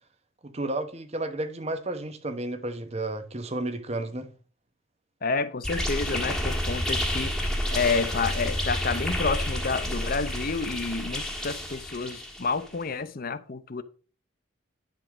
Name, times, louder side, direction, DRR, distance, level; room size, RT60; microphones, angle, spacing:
voice 1, 0.4-4.3, right 2 dB, 30° right, 0.9 m, -32 dB
voice 2, 5.2-7.4 7.7-13.8, left 4 dB, 45° left, 0.6 m, -29 dB
sound 1, 5.6-12.7, left 1 dB, ahead, 1.4 m, -30 dB
10.5 x 3.8 x 6.1 m
head